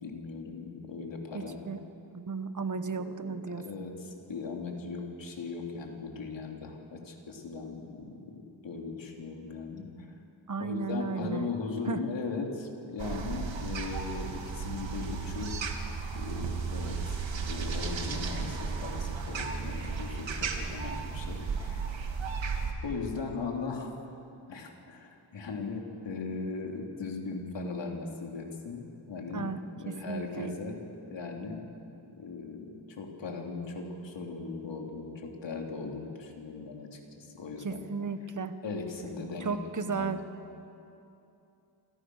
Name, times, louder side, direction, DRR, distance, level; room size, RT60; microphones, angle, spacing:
voice 1, 0.0-1.6 3.0-8.4 8.6-10.1 10.6-15.5 16.1-21.9 22.8-23.9 24.5-29.5 29.8-30.8 31.1-31.7 32.2-37.8 38.6-40.2, left 4 dB, 75° left, 1 dB, 3.8 m, -38 dB
voice 2, 1.3-1.8 2.1-3.6 10.5-11.5 11.9-12.0 29.3-30.5 37.6-38.5 39.4-40.2, right 5 dB, 40° right, 9 dB, 1.3 m, -34 dB
sound 1, 13.0-22.7, right 5 dB, 90° right, 2.6 m, -34 dB
28.0 x 27.0 x 6.5 m, 2.7 s
wide cardioid pair, 155°, 44 cm